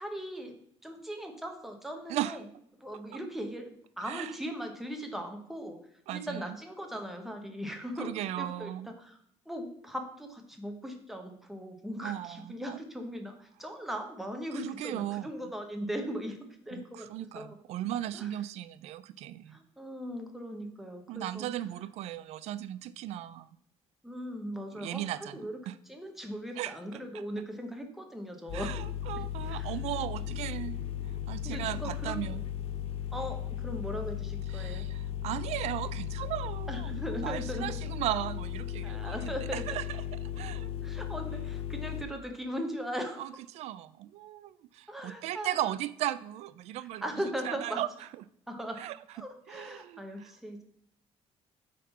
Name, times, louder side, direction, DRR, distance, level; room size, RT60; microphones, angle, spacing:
voice 1, 0.0-2.4 2.8-9.2 9.5-17.6 18.1-18.3 19.5-21.5 24.0-28.8 29.2-29.8 31.4-32.4 33.1-34.9 36.7-37.8 38.8-39.8 40.8-43.3 44.9-45.7 47.0-47.8 48.5-48.8 49.1-50.6, equal, ahead, 3 dB, 0.9 m, -39 dB
voice 2, 6.1-6.4 8.0-8.9 12.0-12.8 14.5-15.3 16.7-16.8 17.1-19.6 21.1-23.5 24.7-25.7 26.6-26.7 27.1-27.2 28.5-30.8 31.3-32.4 34.5-39.2 39.5-39.8 40.4-40.7 43.2-47.1 47.4-47.9 48.8-49.0 49.5-50.3, right 13 dB, 80° right, 15 dB, 0.4 m, -36 dB
sound 1, 28.5-42.0, left 10 dB, 65° left, 0.8 m, -36 dB
8.5 x 3.7 x 5.6 m, 0.72 s
cardioid pair, 180°, 11 cm